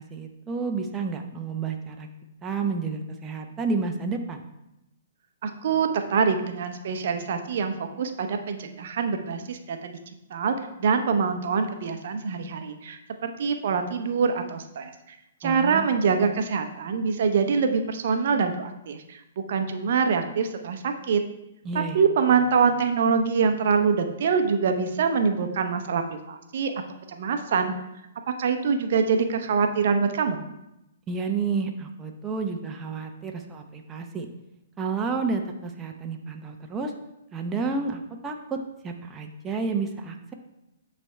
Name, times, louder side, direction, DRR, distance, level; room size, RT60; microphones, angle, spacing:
voice 1, 0.0-2.1 2.4-4.5 15.4-15.9 21.6-22.0 31.1-34.3 34.8-36.9 37.3-40.3, right 4 dB, 15° right, 3 dB, 0.7 m, -30 dB
voice 2, 5.4-9.9 10.3-21.2 21.7-26.7 27.1-27.7 28.3-30.4, right 5 dB, 60° right, 6 dB, 0.7 m, -25 dB
9.0 x 3.3 x 4.4 m, 0.87 s
hypercardioid pair, 125°, 0 cm